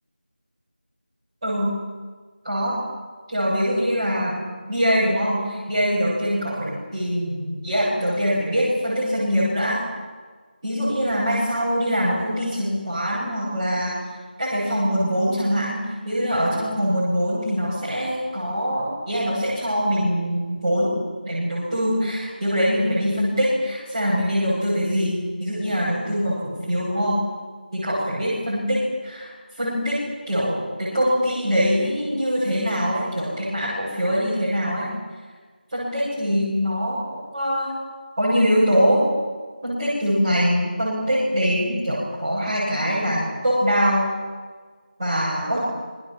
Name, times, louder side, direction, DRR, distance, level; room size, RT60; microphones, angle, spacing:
voice 1, 1.4-1.8 2.4-2.8 3.3-9.8 10.6-14.0 14.4-20.9 21.2-27.2 27.7-30.0 30.3-34.9 35.7-37.7 38.2-39.0 39.6-44.1 45.0-45.6, equal, 25° right, -9 dB, 7.8 m, -23 dB
27.0 x 22.0 x 7.5 m, 1.5 s
figure-of-eight pair, 170°, 5 cm